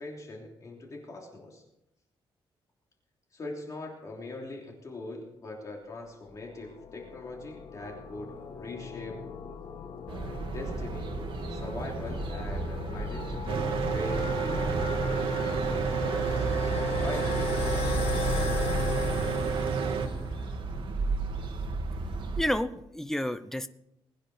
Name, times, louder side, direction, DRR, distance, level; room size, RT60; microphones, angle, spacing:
voice 1, 0.0-1.6 3.3-9.2 10.1-11.2 11.5-16.7 17.0-17.3, left 2 dB, 35° left, 0 dB, 3.1 m, -42 dB
sound 1, 6.2-20.4, left 8 dB, 80° left, 2.0 m, -37 dB
sound 2, 10.1-22.4, right 4 dB, 60° right, 2.0 m, -35 dB
Mechanical fan, 13.5-20.1, right 6 dB, 75° right, 1.6 m, -30 dB
voice 2, 22.4-23.7, left 1 dB, 5° left, 12 dB, 0.7 m, -30 dB
21.5 x 9.7 x 4.4 m, 0.83 s
cardioid pair, 150°, 10 cm